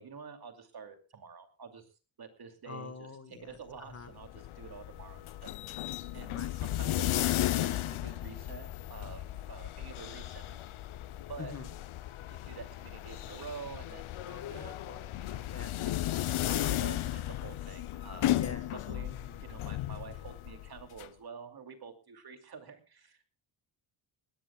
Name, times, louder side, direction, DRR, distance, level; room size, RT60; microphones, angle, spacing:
voice 1, 0.0-1.9 2.2-3.1 3.4-5.9 6.1-10.6 11.3-11.5 12.4-14.1 14.5-14.7 15.2-15.5 15.8-18.3 18.7-19.1 19.4-23.3, right 6 dB, 50° right, 6 dB, 2.6 m, -48 dB
voice 2, 2.7-4.1 6.3-6.5 11.4-11.7 14.2-15.1 15.5-15.9 18.3-18.7 19.0-19.5, left 4 dB, 30° left, 9 dB, 1.5 m, -46 dB
sound 1, 4.0-21.1, left 13 dB, 85° left, 0.8 m, -35 dB
21.0 x 17.5 x 2.3 m, 0.32 s
wide cardioid pair, 155°, 48 cm